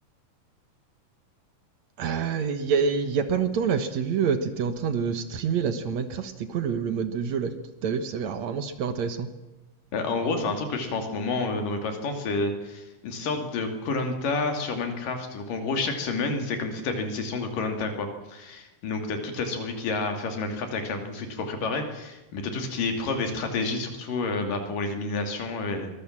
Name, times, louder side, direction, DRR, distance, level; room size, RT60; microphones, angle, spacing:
voice 1, 2.0-7.5 7.8-9.3, right 6 dB, 60° right, 10 dB, 2.4 m, -27 dB
voice 2, 9.9-25.9, left 3 dB, 85° left, 5 dB, 4.3 m, -29 dB
23.5 x 20.5 x 7.4 m, 1.0 s
omnidirectional pair, 3.7 m